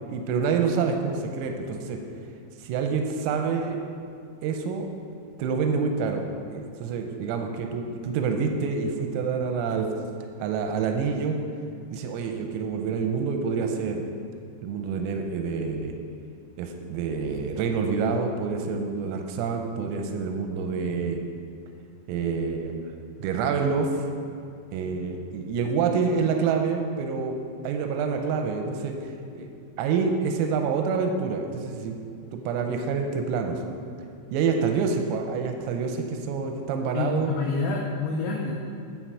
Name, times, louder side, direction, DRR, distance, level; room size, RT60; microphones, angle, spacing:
voice 1, 0.1-2.0 2.6-3.8 4.4-4.9 5.4-9.9 10.4-11.4 11.9-14.0 14.6-16.0 16.6-21.2 22.1-22.8 23.2-23.9 24.7-27.4 27.6-29.0 29.4-29.5 29.8-32.0 32.3-33.6 34.3-37.3, right 5 dB, 90° right, 4 dB, 3.4 m, -27 dB
voice 2, 36.9-38.5, left 3 dB, 80° left, -2 dB, 2.7 m, -27 dB
10.0 x 7.7 x 4.7 m, 2.5 s
omnidirectional pair, 6.0 m